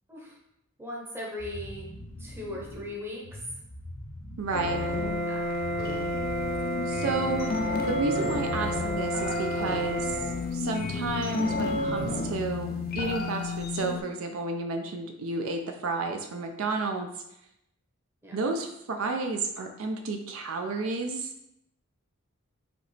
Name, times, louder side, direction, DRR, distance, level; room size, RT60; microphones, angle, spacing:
voice 1, 0.8-1.9 2.2-3.3 5.3-5.5 5.8-6.2 18.2-18.4, left 1 dB, 10° right, -2 dB, 0.8 m, -39 dB
sound 1, 1.4-10.6, left 1 dB, 70° left, 0.7 m, -44 dB
voice 2, 4.4-4.8 6.9-7.5 7.9-10.2 10.5-17.1 18.3-21.5, right 3 dB, 65° right, 4 dB, 0.4 m, -31 dB
sound 2, 4.5-14.0, left 2 dB, 45° left, 0.4 m, -30 dB
5.0 x 2.9 x 3.2 m, 0.83 s
head